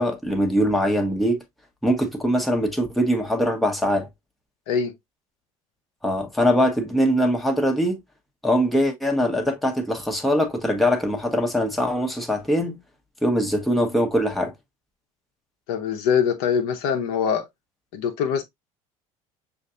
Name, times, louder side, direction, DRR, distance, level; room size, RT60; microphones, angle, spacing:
voice 1, 0.0-1.4 1.8-4.1 6.0-8.0 8.4-12.8 13.2-14.5, equal, ahead, 1.2 m, -22 dB
voice 2, 15.7-17.5 17.9-18.4, left 7 dB, 65° left, 0.9 m, -23 dB
6.3 x 2.6 x 2.5 m
hypercardioid pair, 70°, 18 cm